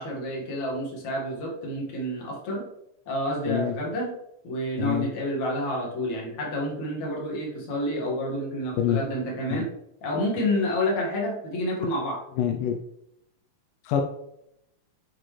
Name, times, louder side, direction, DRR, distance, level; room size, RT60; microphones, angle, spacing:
voice 1, 0.0-2.7 3.1-4.2 4.4-9.7 10.0-12.3, left 1 dB, 60° left, -2 dB, 3.1 m, -29 dB
voice 2, 12.4-12.8 13.9-14.0, left 9 dB, 85° left, 4 dB, 2.3 m, -25 dB
9.2 x 6.1 x 3.2 m, 0.80 s
omnidirectional pair, 3.7 m